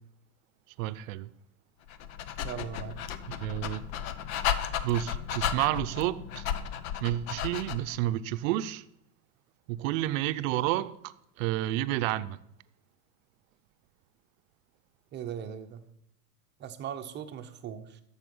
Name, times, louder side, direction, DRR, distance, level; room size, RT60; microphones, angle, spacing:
voice 1, 0.8-1.3 3.3-3.8 4.8-6.5 7.0-8.8 9.7-12.4, right 15 dB, 55° right, 0.7 m, -30 dB
Dog, 1.9-8.0, left 9 dB, 60° left, 0.9 m, -34 dB
voice 2, 2.4-3.0 15.1-15.8 16.6-18.0, right 9 dB, 25° right, 0.8 m, -39 dB
12.5 x 7.1 x 5.4 m
supercardioid pair, 140°, 47 cm